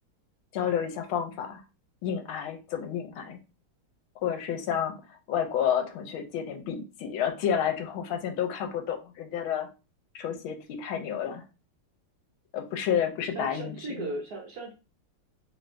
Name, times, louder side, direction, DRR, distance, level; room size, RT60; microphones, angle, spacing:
voice 1, 0.5-1.6 2.0-3.4 4.2-9.7 10.1-11.4 12.5-14.0, left 8 dB, 80° left, 6 dB, 1.4 m, -30 dB
voice 2, 13.3-14.7, right 2 dB, 65° right, -1 dB, 1.0 m, -36 dB
3.4 x 3.2 x 2.5 m, 0.31 s
omnidirectional pair, 2.3 m